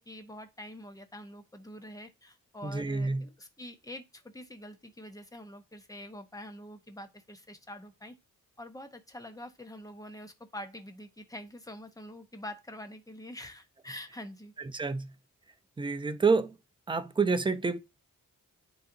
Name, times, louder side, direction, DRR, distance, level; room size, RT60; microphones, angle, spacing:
voice 1, 0.0-8.1 8.6-14.5, left 1 dB, 10° left, 0.8 m, -45 dB
voice 2, 2.6-3.3 14.6-15.1 15.8-16.6 16.9-17.8, right 4 dB, 15° right, 0.5 m, -28 dB
9.4 x 4.0 x 2.6 m
wide cardioid pair, 140°, 33 cm